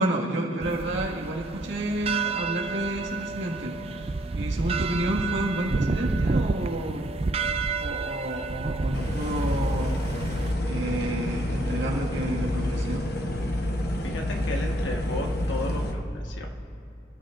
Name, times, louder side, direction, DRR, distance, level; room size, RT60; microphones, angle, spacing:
voice 1, 0.0-3.8 4.3-7.1 7.8-10.0 10.6-13.0, right 1 dB, 70° right, -2 dB, 1.9 m, -30 dB
sound 1, 0.6-10.5, right 4 dB, 30° right, 0.3 m, -30 dB
sound 2, 8.9-15.9, left 1 dB, 55° left, 1.0 m, -28 dB
voice 2, 14.0-16.5, left 2 dB, 75° left, 1 dB, 1.4 m, -34 dB
27.0 x 13.0 x 2.6 m, 2.6 s
head